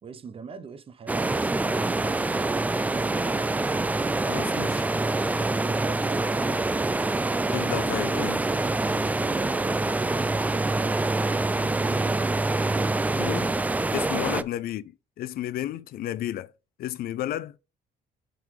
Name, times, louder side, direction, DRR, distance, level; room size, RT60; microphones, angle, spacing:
voice 1, 0.0-3.5 4.3-4.7 5.4-6.6 8.9-12.3 12.6-12.9 14.1-14.3, right 5 dB, 35° right, 0.7 m, -43 dB
sound 1, 1.1-14.4, right 2 dB, 10° right, 0.3 m, -25 dB
voice 2, 4.2-4.8 7.5-8.5 13.2-13.5 13.9-16.5 16.8-17.6, left 12 dB, 60° left, 0.5 m, -32 dB
9.1 x 3.9 x 3.2 m
cardioid pair, 110°, 17 cm